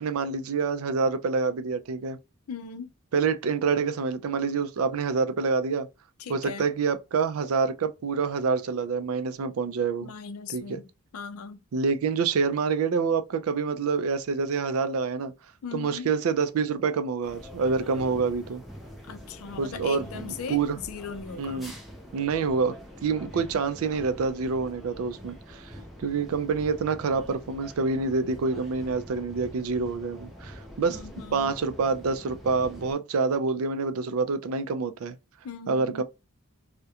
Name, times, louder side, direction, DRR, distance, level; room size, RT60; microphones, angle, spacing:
voice 1, 0.0-2.2 3.1-5.9 6.3-10.1 10.5-10.8 11.7-15.3 15.7-18.6 19.6-20.0 20.5-20.8 21.4-21.7 22.1-25.7 26.0-31.0 31.3-35.1 35.7-36.0, right 5 dB, 70° right, 0.4 m, -27 dB
voice 2, 2.5-2.9 6.2-6.7 10.0-10.8 11.1-11.6 15.6-16.1 19.1-21.7 23.1-23.4 30.9-31.5 35.4-36.0, left 5 dB, 70° left, 0.4 m, -39 dB
sound 1, 17.2-32.9, equal, ahead, 0.5 m, -45 dB
2.3 x 2.1 x 2.7 m
head